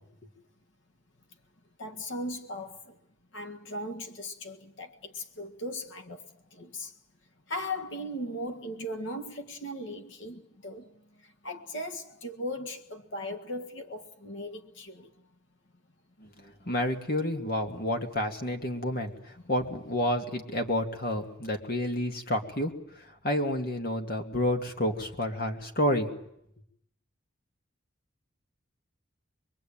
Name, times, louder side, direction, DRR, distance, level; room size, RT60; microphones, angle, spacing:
voice 1, 1.8-2.9 3.3-6.2 6.5-6.9 7.5-10.9 11.4-15.1, left 1 dB, 65° left, 1.7 m, -38 dB
voice 2, 16.2-22.7 23.2-26.1, left 1 dB, 45° left, 2.5 m, -30 dB
24.0 x 23.0 x 8.9 m
head